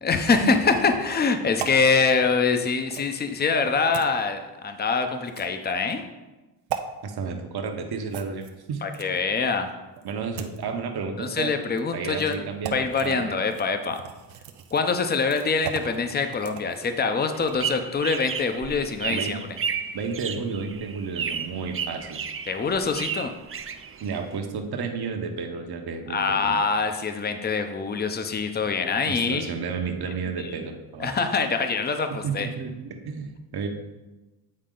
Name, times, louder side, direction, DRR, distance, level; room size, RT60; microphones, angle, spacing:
voice 1, 0.0-6.0 8.8-9.7 11.2-12.4 12.7-14.0 14.7-19.4 22.5-23.3 26.1-29.5 30.4-30.5 31.0-32.5, left 4 dB, 20° left, 7 dB, 0.6 m, -24 dB
sound 1, 1.6-1.8 2.9-3.1 3.9-4.1 5.3-5.7 6.7-6.9 8.1-9.3 10.0-10.6 11.6-11.8 12.2-12.4 12.6-13.2 13.5-17.7 18.1-18.3, right 9 dB, 85° right, 0.7 m, -37 dB
voice 2, 7.0-8.8 10.0-11.5 11.9-13.4 19.1-19.4 19.9-22.2 24.0-26.6 29.1-31.1 32.1-33.7, right 5 dB, 60° right, 4 dB, 1.0 m, -32 dB
sound 2, 17.3-24.4, right 7 dB, 30° right, 0.5 m, -33 dB
8.7 x 4.1 x 3.8 m, 1.1 s
cardioid pair, 75°, 43 cm